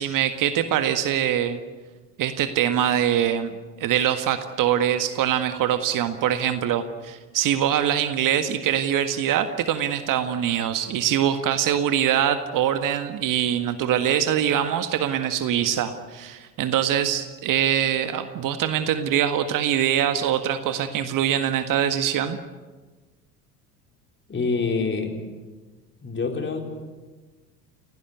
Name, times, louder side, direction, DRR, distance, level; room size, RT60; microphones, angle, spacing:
voice 1, 0.0-1.6 2.2-22.4, right 10 dB, 45° right, 9 dB, 1.7 m, -23 dB
voice 2, 24.3-25.1 26.0-26.6, left 4 dB, 25° left, 3 dB, 4.3 m, -26 dB
30.0 x 17.5 x 8.1 m, 1.3 s
figure-of-eight pair, 70°, 46 cm